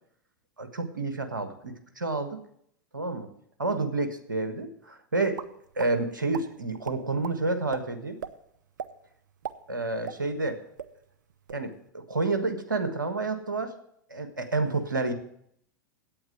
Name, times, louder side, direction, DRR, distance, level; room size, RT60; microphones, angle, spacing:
voice 1, 0.6-2.4 2.9-3.3 3.6-5.4 5.7-8.2 9.7-10.6 11.5-13.7 14.1-15.1, right 3 dB, 90° right, 7 dB, 1.5 m, -29 dB
sound 1, 5.3-5.9 6.3-6.5 6.8-7.4 7.7-7.8 8.2-8.3 8.8-8.9 9.3-10.5 10.8-10.9 11.3-11.6, right 8 dB, 75° right, 0.7 m, -37 dB
8.7 x 8.6 x 7.9 m, 0.71 s
hypercardioid pair, 95°, 10 cm